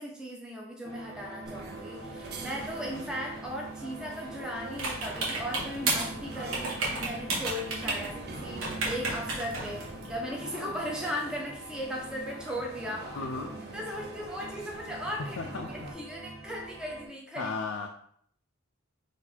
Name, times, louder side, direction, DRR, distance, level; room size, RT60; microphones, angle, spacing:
voice 1, 0.0-13.2 13.7-17.5, equal, 5° right, -2 dB, 0.7 m, -37 dB
sound 1, 0.8-17.1, right 2 dB, 90° right, 0.9 m, -45 dB
sound 2, 1.5-15.9, right 2 dB, 50° right, 0.6 m, -45 dB
sound 3, 4.7-10.2, right 3 dB, 70° right, 1.3 m, -33 dB
voice 2, 13.1-13.5 15.4-15.9 17.4-17.9, left 4 dB, 65° left, 3 dB, 0.4 m, -35 dB
4.2 x 2.6 x 4.3 m, 0.64 s
head